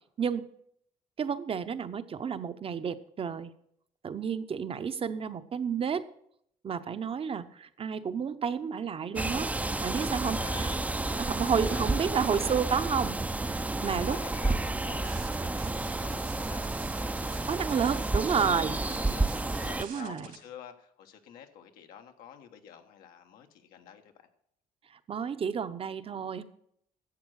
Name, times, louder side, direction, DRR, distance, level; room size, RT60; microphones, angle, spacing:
voice 1, 1.2-3.5 4.0-6.0 6.6-10.7 11.1-13.2 13.5-14.2 17.5-18.8 19.8-20.3 25.1-26.4, right 7 dB, 40° right, 12 dB, 0.8 m, -31 dB
sound 1, 9.2-19.8, right 2 dB, 10° right, 0.5 m, -31 dB
voice 2, 10.2-10.7 11.5-12.8 13.8-17.4 17.9-24.3, left 9 dB, 85° left, 5 dB, 1.3 m, -49 dB
sound 2, 15.0-20.3, right 8 dB, 75° right, 2.2 m, -49 dB
11.5 x 7.7 x 6.3 m, 0.70 s
cardioid pair, 90°, 15 cm